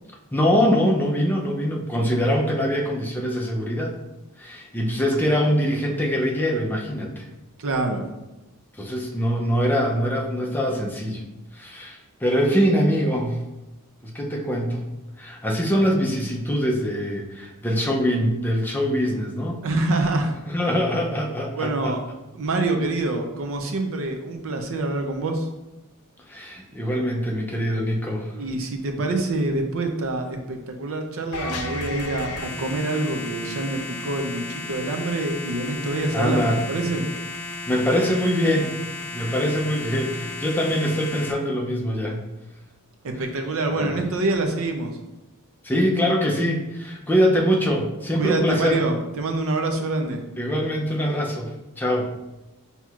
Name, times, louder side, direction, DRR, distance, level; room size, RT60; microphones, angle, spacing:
voice 1, 0.3-3.9 4.4-7.2 8.8-11.2 11.5-13.4 14.0-14.8 15.2-19.6 20.5-22.0 26.3-28.3 36.1-36.6 37.7-38.8 39.1-42.2 43.7-44.0 45.6-48.8 50.4-52.1, equal, 10° left, 0 dB, 0.5 m, -23 dB
voice 2, 7.6-8.2 19.6-20.4 20.6-20.7 21.6-22.0 22.3-25.5 28.3-37.1 43.0-44.9 48.2-50.2, right 2 dB, 65° right, 4 dB, 0.5 m, -26 dB
sound 1, 31.3-41.3, left 2 dB, 90° left, 0.6 m, -34 dB
5.9 x 2.8 x 2.4 m, 1.0 s
head